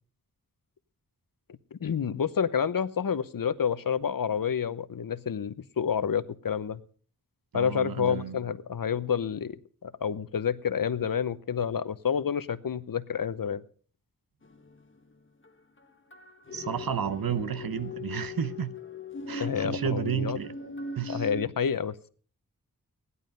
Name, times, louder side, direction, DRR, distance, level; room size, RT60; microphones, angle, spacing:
voice 1, 1.8-6.8 7.5-13.6 19.4-20.4 21.1-22.1, left 7 dB, 75° left, 0.9 m, -29 dB
voice 2, 7.5-8.4 16.5-18.7 19.3-20.5 21.0-21.3, right 8 dB, 85° right, 0.9 m, -32 dB
sound 1, 14.4-14.7 15.4-15.5 15.8-15.9 16.1-21.5, left 2 dB, 35° left, 1.3 m, -39 dB
16.5 x 11.0 x 5.2 m
wide cardioid pair, 90°, 34 cm